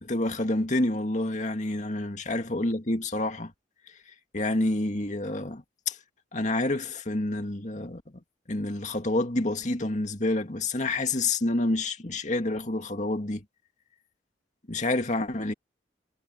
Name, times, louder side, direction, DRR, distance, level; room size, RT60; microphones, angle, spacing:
voice 1, 0.0-3.5 4.3-6.0 6.3-8.0 8.5-13.4 14.7-15.5, left 2 dB, 40° left, 2.2 m, -28 dB
head